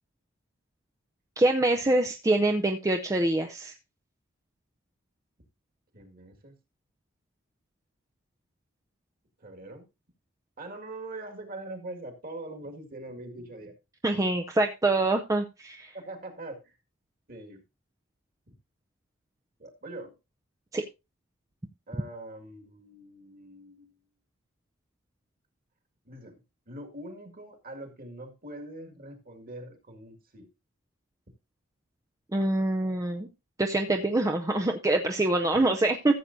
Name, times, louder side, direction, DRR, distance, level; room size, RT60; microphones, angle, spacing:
voice 1, 1.4-3.7 14.0-15.9 20.7-20.8 32.3-33.3 33.6-36.2, right 2 dB, 15° right, 4 dB, 0.5 m, -25 dB
voice 2, 5.9-6.5 9.4-9.9 10.6-13.7 15.9-16.8 17.3-17.6 18.5-18.6 19.6-20.1 21.9-24.0 26.1-26.4 26.7-30.5, right 2 dB, 45° right, 5 dB, 2.0 m, -43 dB
14.5 x 7.6 x 2.6 m, 0.25 s
head